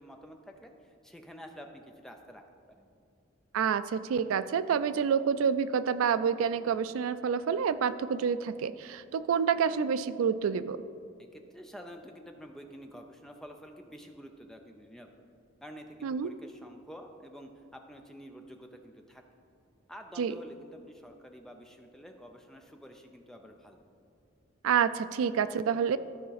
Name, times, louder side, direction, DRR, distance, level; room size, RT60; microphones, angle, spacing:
voice 1, 0.0-2.4 2.8-2.9 11.2-15.2 15.6-19.2 19.9-23.8, equal, ahead, 4 dB, 0.5 m, -49 dB
voice 2, 3.5-10.8 16.0-16.3 20.2-20.3 24.6-26.0, right 7 dB, 75° right, 14 dB, 0.3 m, -28 dB
12.5 x 5.1 x 4.0 m, 2.4 s
head